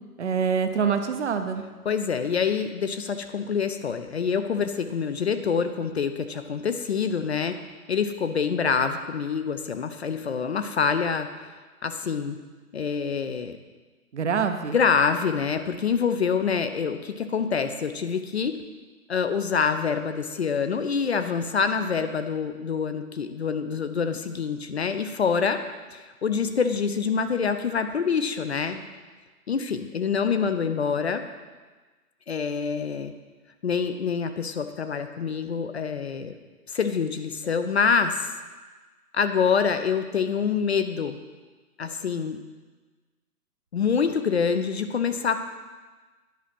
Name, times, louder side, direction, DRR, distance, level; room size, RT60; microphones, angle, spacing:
voice 1, 0.2-1.6 14.1-14.8, right 6 dB, 50° right, 7 dB, 0.8 m, -25 dB
voice 2, 1.8-7.6 7.9-11.5 11.8-12.4 12.7-13.6 14.7-18.6 19.1-25.6 25.9-28.8 29.5-31.2 32.3-33.1 33.6-36.3 36.7-38.3 39.1-41.2 41.8-42.4 43.7-45.4, left 6 dB, 45° left, 9 dB, 0.5 m, -26 dB
10.5 x 4.9 x 5.7 m, 1.3 s
figure-of-eight pair, 130°, 46 cm